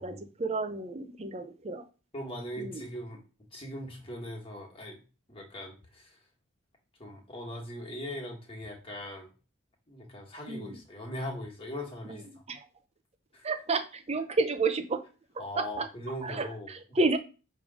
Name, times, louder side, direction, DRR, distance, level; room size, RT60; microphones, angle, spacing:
voice 1, 0.0-1.8 2.6-2.8 10.5-10.8 12.1-12.2 12.5-12.7 13.4-15.0 15.6-15.9 16.2-17.2, right 3 dB, 30° right, 9 dB, 0.6 m, -31 dB
voice 2, 2.1-3.2 3.5-5.0 5.3-6.2 7.0-9.3 9.9-12.4 13.3-13.4 15.4-16.7, left 1 dB, 25° left, 0 dB, 1.6 m, -40 dB
6.7 x 3.3 x 4.9 m, 0.34 s
head